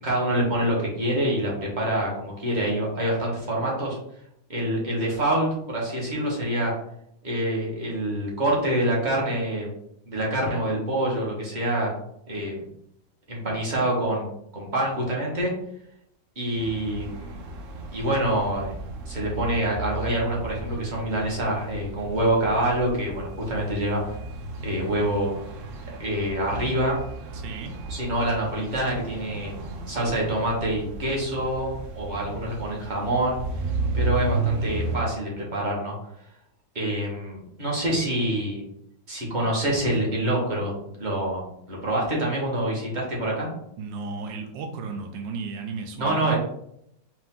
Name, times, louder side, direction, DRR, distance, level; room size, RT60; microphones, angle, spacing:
voice 1, 0.0-4.0 4.5-6.7 7.2-9.7 10.1-11.9 12.3-12.6 13.3-14.3 14.5-15.5 16.4-17.4 17.9-18.7 19.1-24.2 24.6-25.3 26.0-27.0 27.9-29.5 29.9-33.4 33.9-35.9 36.7-38.6 39.1-40.7 41.0-43.5 46.0-46.4, right 1 dB, 30° right, -3 dB, 1.1 m, -26 dB
sound 1, 16.6-35.0, right 2 dB, 60° right, 0.8 m, -34 dB
voice 2, 27.3-27.7 43.8-46.4, right 4 dB, 80° right, 3 dB, 1.3 m, -34 dB
4.6 x 2.7 x 3.7 m, 0.74 s
omnidirectional pair, 2.0 m